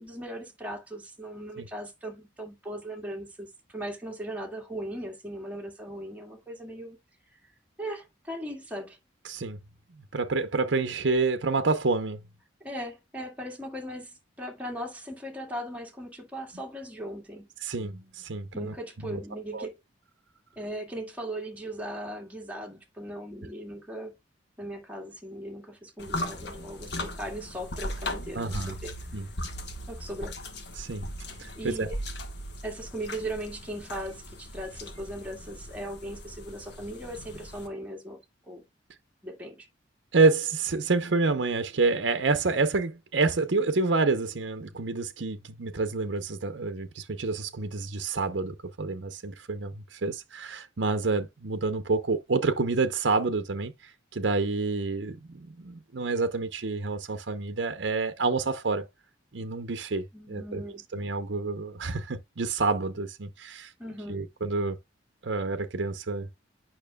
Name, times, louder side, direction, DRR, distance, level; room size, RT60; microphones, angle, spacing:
voice 1, 0.0-7.0 7.3-7.4 7.8-9.0 12.6-17.5 18.5-19.7 20.6-24.1 24.6-28.9 29.9-30.4 31.6-31.9 32.6-38.2 38.5-38.6 39.2-39.7 60.1-60.8 63.8-64.3, right 1 dB, 10° right, 1.9 m, -38 dB
voice 2, 9.3-9.6 10.1-12.2 17.6-18.7 19.0-19.2 19.5-19.7 28.3-28.7 29.1-29.2 30.8-31.1 31.4-31.9 40.1-58.9 59.3-60.6 60.9-63.7 64.1-64.7 65.2-66.3, right 3 dB, 65° right, 0.7 m, -28 dB
sound 1, 26.0-37.7, left 1 dB, 60° left, 1.3 m, -38 dB
9.0 x 5.8 x 2.3 m
head